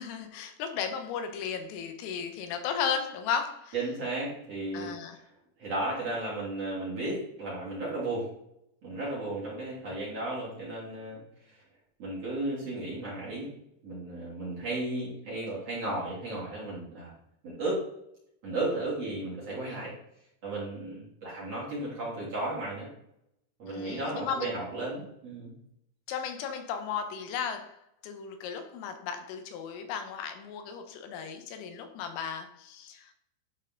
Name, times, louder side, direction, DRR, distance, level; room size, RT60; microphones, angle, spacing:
voice 1, 0.0-3.7 4.7-5.2 23.7-24.5 26.1-27.8 28.0-33.1, left 7 dB, 85° left, 6 dB, 3.6 m, -35 dB
voice 2, 3.7-4.9 5.6-8.3 8.8-11.2 12.0-13.5 13.8-17.1 17.4-17.8 18.4-19.9 20.4-22.9 23.6-25.5, right 2 dB, 35° right, -7 dB, 3.4 m, -34 dB
12.0 x 4.6 x 3.8 m, 0.77 s
omnidirectional pair, 5.8 m